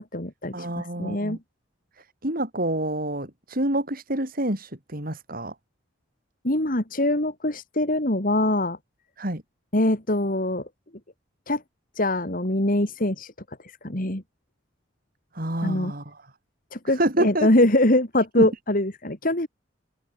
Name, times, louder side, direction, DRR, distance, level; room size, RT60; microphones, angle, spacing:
voice 1, 0.0-1.4 6.4-8.8 9.7-10.7 11.5-11.6 11.9-13.3 13.6-14.2 15.6-15.9 16.7-19.5, left 1 dB, 45° left, 3.2 m, -23 dB
voice 2, 0.5-1.4 2.0-5.5 9.2-9.4 15.3-16.1 16.9-17.5 18.4-18.5, right 1 dB, 45° right, 5.9 m, -27 dB
head